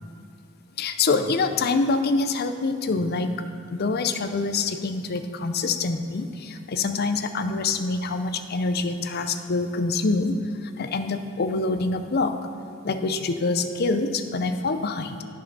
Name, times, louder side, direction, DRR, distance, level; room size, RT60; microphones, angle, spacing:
voice 1, 0.8-3.4 3.7-12.4 12.8-15.2, left 3 dB, 50° left, 8 dB, 0.5 m, -25 dB
10.0 x 5.6 x 5.4 m, 2.5 s
head